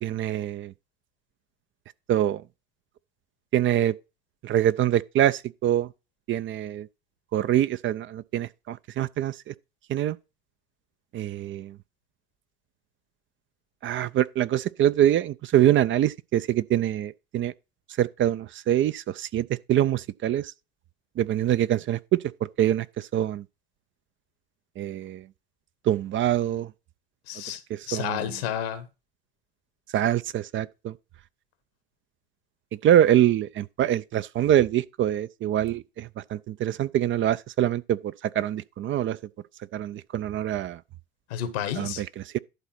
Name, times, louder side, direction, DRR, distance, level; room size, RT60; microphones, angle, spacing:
voice 1, 0.0-0.7 2.1-2.4 3.5-3.9 4.4-5.9 6.3-6.9 7.3-9.5 9.9-10.2 11.1-11.8 13.8-17.5 18.0-20.5 21.2-22.2 22.6-23.4 24.8-25.3 25.8-26.7 27.7-28.2 29.9-30.9 32.8-39.2 39.7-40.8 41.8-42.4, right 11 dB, 40° right, 0.5 m, -24 dB
voice 2, 27.3-27.6 27.9-28.9 41.3-42.0, left 10 dB, 75° left, 1.4 m, -31 dB
11.5 x 4.0 x 5.8 m
figure-of-eight pair, 60°, 32 cm